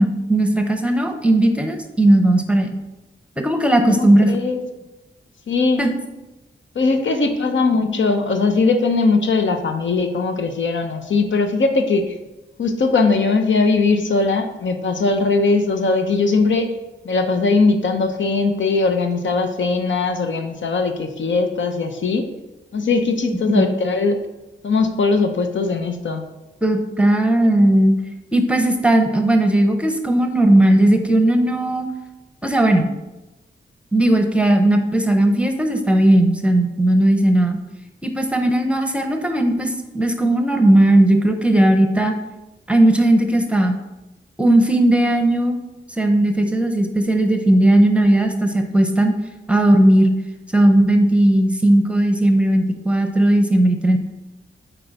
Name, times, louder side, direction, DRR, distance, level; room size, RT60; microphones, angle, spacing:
voice 1, 0.0-2.7 3.4-4.3 5.8-6.0 23.5-23.7 26.6-27.9 28.3-31.9 32.4-32.9 33.9-37.6 38.0-42.2 42.7-43.7 44.4-45.6 46.0-49.1 49.5-50.1 50.5-54.0, right 1 dB, 5° right, 4 dB, 0.8 m, -16 dB
voice 2, 3.9-4.6 5.5-5.8 6.7-12.1 12.6-16.7 17.0-22.3 22.7-24.2 24.6-26.2, left 3 dB, 75° left, 5 dB, 0.8 m, -19 dB
7.6 x 4.6 x 4.0 m, 1.0 s
wide cardioid pair, 90°, 20 cm